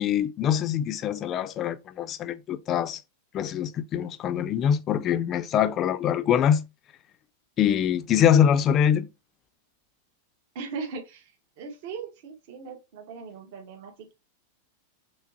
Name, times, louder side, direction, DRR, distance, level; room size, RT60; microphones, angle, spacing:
voice 1, 0.0-3.0 3.3-6.6 7.6-9.1, left 9 dB, 30° left, 0.4 m, -24 dB
voice 2, 10.5-14.1, right 5 dB, 60° right, 0.9 m, -39 dB
5.9 x 2.0 x 2.8 m
supercardioid pair, 140°, 0 cm